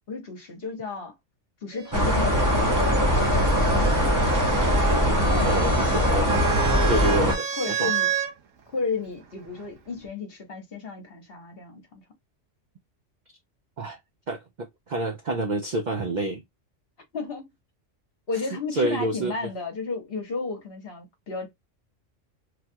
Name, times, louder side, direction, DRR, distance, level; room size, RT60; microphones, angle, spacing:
voice 1, 0.1-1.1 1.6-2.8 3.5-4.0 4.3-4.4 5.2-6.3 7.6-8.1 8.7-12.0 17.1-17.5 18.3-21.5, left 4 dB, 50° left, 1.1 m, -33 dB
sound 1, 1.7-8.3 9.4-10.1, right 10 dB, 90° right, 1.1 m, -32 dB
sound 2, 1.9-7.3, equal, 20° right, 0.7 m, -21 dB
voice 2, 5.4-6.4 6.9-7.9 13.8-14.0 14.3-16.4 18.7-19.5, right 2 dB, 60° right, 0.4 m, -28 dB
3.3 x 2.3 x 2.6 m
omnidirectional pair, 1.3 m